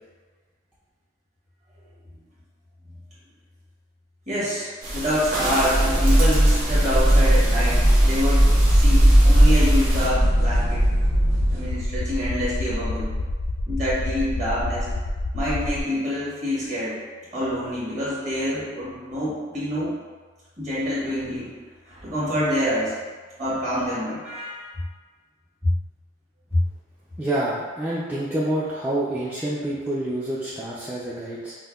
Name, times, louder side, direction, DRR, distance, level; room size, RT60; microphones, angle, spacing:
voice 1, 4.3-10.9 11.5-13.1 13.7-14.9 15.3-17.0 17.3-19.9 20.6-21.5 21.9-22.9 23.4-24.7 25.6-25.7 26.5-26.6, equal, 35° right, -9 dB, 1.3 m, -26 dB
sound 1, 4.8-10.1, right 1 dB, 80° right, 1.1 m, -30 dB
sound 2, 5.7-11.7, right 1 dB, 60° right, 1.5 m, -18 dB
sound 3, 8.7-15.8, left 2 dB, 65° left, 0.3 m, -28 dB
voice 2, 27.2-31.5, right 1 dB, 10° right, -9 dB, 0.3 m, -27 dB
5.3 x 2.1 x 2.3 m, 1.4 s
head